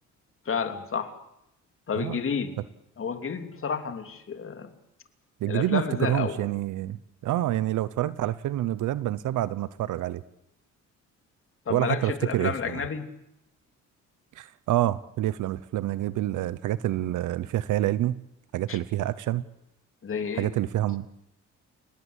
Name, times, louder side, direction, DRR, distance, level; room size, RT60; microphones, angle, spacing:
voice 1, 0.4-1.2 1.9-2.5 3.0-4.7 5.5-6.4 11.7-13.1 18.7-18.8 20.0-20.5, left 6 dB, 45° left, 7 dB, 3.1 m, -30 dB
voice 2, 5.4-10.2 11.7-12.8 14.3-18.2 18.5-19.4 20.4-21.1, right 14 dB, 80° right, 16 dB, 0.9 m, -27 dB
29.0 x 18.5 x 8.2 m, 0.82 s
cardioid pair, 90°, 30 cm